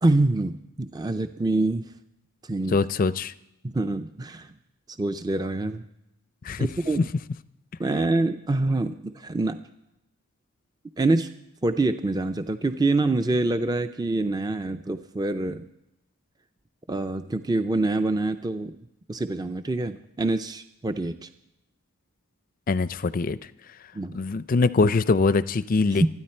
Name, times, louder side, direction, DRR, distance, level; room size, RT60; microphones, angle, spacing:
voice 1, 0.0-1.9 2.4-2.8 3.6-4.5 5.0-5.8 6.6-7.1 7.8-9.6 11.0-11.3 11.6-15.7 16.9-18.8 19.1-21.3 23.9-24.2 26.0-26.1, right 2 dB, 20° right, 9 dB, 0.4 m, -25 dB
voice 2, 2.7-3.3 6.4-6.7 22.7-23.4 24.1-26.1, left 3 dB, 40° left, 15 dB, 0.4 m, -23 dB
26.0 x 9.9 x 4.4 m, 0.88 s
head